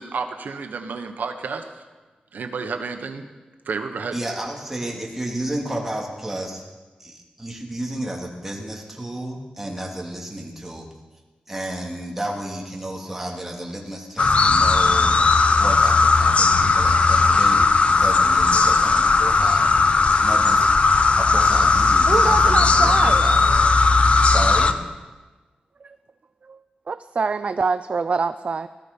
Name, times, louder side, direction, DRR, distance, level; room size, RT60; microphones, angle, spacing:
voice 1, 0.0-1.7 2.3-3.3 3.7-4.2, right 4 dB, 80° right, 6 dB, 1.2 m, -30 dB
voice 2, 4.1-6.6 7.0-10.9 11.5-15.2 15.6-17.7 18.0-20.7 21.2-23.4 24.2-24.8, right 1 dB, 10° right, -2 dB, 2.8 m, -32 dB
sound 1, 14.2-24.7, left 3 dB, 45° left, 0.8 m, -17 dB
voice 3, 22.1-23.2 25.8-26.0 26.5-26.6 26.9-28.7, right 4 dB, 45° right, 12 dB, 0.4 m, -24 dB
18.5 x 13.5 x 5.4 m, 1.2 s
wide cardioid pair, 130°, 3 cm